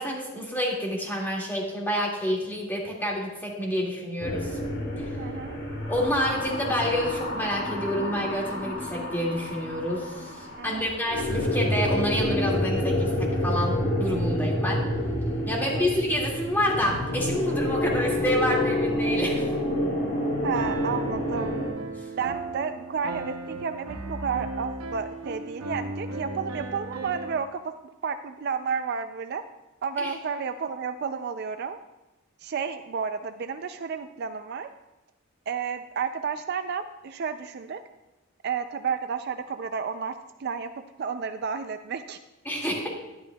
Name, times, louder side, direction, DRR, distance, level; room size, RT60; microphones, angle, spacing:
voice 1, 0.0-4.6 5.0-5.2 5.9-14.8 15.5-19.5 21.9-22.1 30.0-30.1 42.5-42.9, equal, 10° left, -3 dB, 2.0 m, -28 dB
sound 1, 4.2-21.7, left 1 dB, 70° left, 3.0 m, -28 dB
voice 2, 5.2-5.6 10.6-10.9 15.6-15.9 20.4-21.5 22.1-29.4 29.8-31.8 32.4-34.7 35.5-37.8 38.4-40.1 40.4-40.7 41.0-42.2, right 6 dB, 50° right, 9 dB, 0.3 m, -31 dB
Piano, 20.5-27.4, right 3 dB, 90° right, 0.9 m, -36 dB
11.0 x 11.0 x 2.3 m, 1.0 s
head